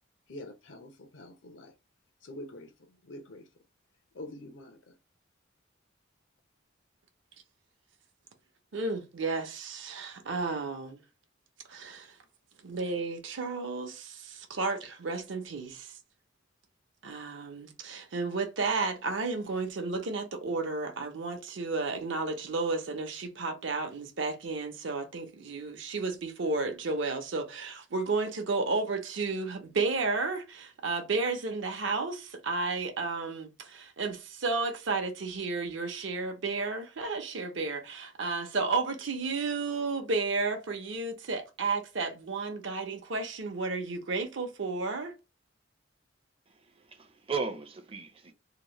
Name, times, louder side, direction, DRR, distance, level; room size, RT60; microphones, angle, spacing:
voice 1, 0.3-1.7 2.2-3.5 4.1-5.0, left 1 dB, 75° left, 0.6 m, -46 dB
voice 2, 8.7-11.0 11.7-12.2 12.6-15.9 17.0-45.1, right 3 dB, 75° right, 0.7 m, -32 dB
voice 3, 46.5-48.3, right 5 dB, 30° right, 0.5 m, -37 dB
2.9 x 2.1 x 3.0 m
head